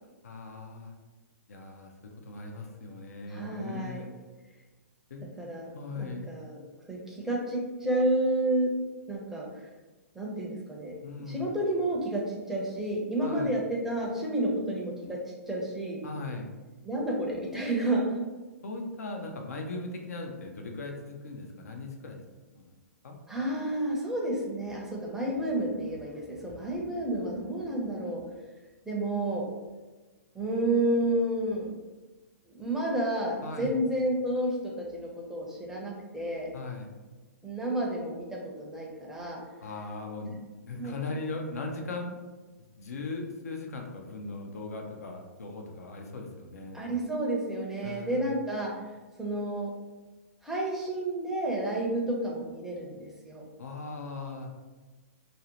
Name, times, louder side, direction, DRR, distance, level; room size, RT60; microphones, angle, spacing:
voice 1, 0.2-0.9 1.5-4.1 5.1-5.2 5.7-6.3 11.0-11.5 13.2-13.5 16.0-16.5 18.6-22.2 22.5-22.7 23.0-23.2 33.4-33.7 36.5-36.9 39.6-42.2 42.8-46.9 47.8-48.3 53.6-54.5, left 3 dB, 75° left, 2 dB, 0.5 m, -39 dB
voice 2, 3.3-4.0 5.4-5.7 6.0-6.6 6.9-8.7 9.1-9.7 10.1-10.9 11.3-15.2 15.5-16.0 16.8-18.2 23.3-28.2 28.9-29.5 30.3-31.7 32.5-36.5 37.4-39.4 40.8-41.0 46.7-48.7 49.2-49.7 50.4-53.4, right 1 dB, 5° right, -3 dB, 0.5 m, -30 dB
2.6 x 2.0 x 2.8 m, 1.2 s
hypercardioid pair, 125°, 8 cm